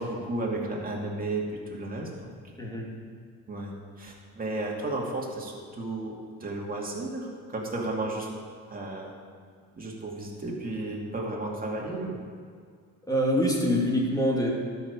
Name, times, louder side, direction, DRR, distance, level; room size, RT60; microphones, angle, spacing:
voice 1, 0.0-2.3 3.5-8.3 8.7-9.1 9.7-12.2, right 2 dB, 30° right, -2 dB, 2.4 m, -33 dB
voice 2, 13.1-14.5, equal, 10° left, -2 dB, 2.4 m, -25 dB
12.0 x 5.8 x 6.8 m, 2.1 s
cardioid pair, 90°, 30 cm